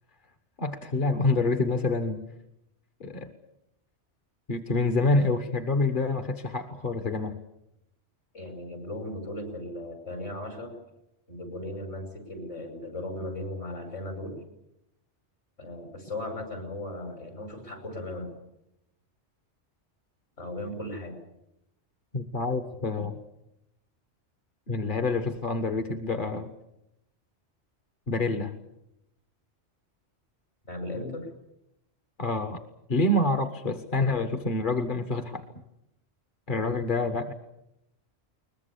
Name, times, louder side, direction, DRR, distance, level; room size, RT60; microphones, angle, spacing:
voice 1, 0.6-2.2 3.0-3.3 4.5-7.4 22.1-23.2 24.7-26.5 28.1-28.5 32.2-32.6 32.9-35.4 36.5-37.3, left 2 dB, 45° left, 7 dB, 1.5 m, -27 dB
voice 2, 8.3-10.7 11.3-14.4 15.6-18.3 20.4-21.2 30.6-31.3, left 1 dB, 65° left, 5 dB, 5.8 m, -37 dB
22.0 x 21.0 x 8.5 m, 0.85 s
omnidirectional pair, 1.2 m